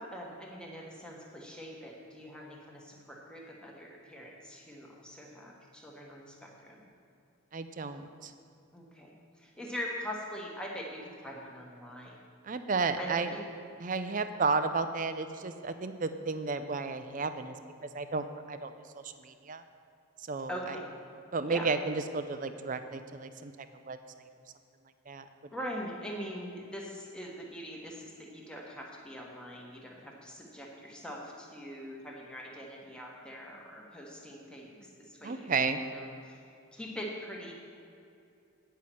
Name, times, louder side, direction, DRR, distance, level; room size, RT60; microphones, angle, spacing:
voice 1, 0.0-6.8 8.7-12.1 13.0-13.4 14.1-14.2 20.5-20.9 21.5-21.7 25.5-35.5 35.9-36.4 36.7-37.5, equal, 5° left, -2 dB, 1.2 m, -42 dB
voice 2, 7.5-8.3 12.4-13.3 13.8-17.6 17.9-19.6 20.2-20.8 21.3-24.0 25.1-25.2 35.2-35.8, right 4 dB, 35° right, 10 dB, 0.5 m, -33 dB
9.5 x 5.6 x 7.6 m, 2.5 s
head